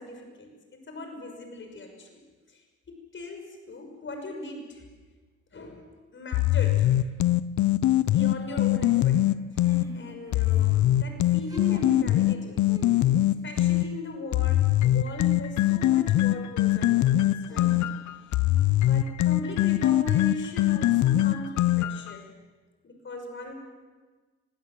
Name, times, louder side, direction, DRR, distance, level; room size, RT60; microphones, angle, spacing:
voice 1, 0.0-2.2 2.5-2.6 2.9-4.8 5.5-5.8 6.1-7.1 8.0-9.3 9.9-12.7 13.4-17.8 18.9-22.3 22.8-23.5, left 2 dB, 40° left, 4 dB, 6.0 m, -39 dB
sound 1, 6.3-9.9 10.3-13.9 14.3-22.1, left 14 dB, 70° left, 0.7 m, -22 dB
sound 2, 9.5-10.8 11.3-12.2 12.7-13.6 15.6-15.7 17.5-18.3, right 1 dB, 10° right, 6.0 m, -43 dB
25.0 x 16.5 x 7.6 m, 1.3 s
cardioid pair, 90°, 30 cm